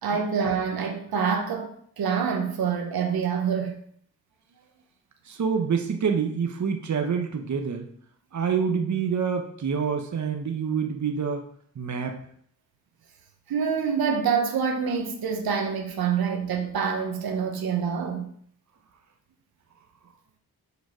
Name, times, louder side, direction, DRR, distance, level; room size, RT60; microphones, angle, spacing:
voice 1, 0.0-3.8 13.5-18.3, right 6 dB, 80° right, 1.2 m, -26 dB
voice 2, 5.3-7.9 8.3-11.4 11.8-12.2, right 6 dB, 50° right, 1.1 m, -27 dB
6.3 x 4.7 x 5.1 m
cardioid pair, 50°, 36 cm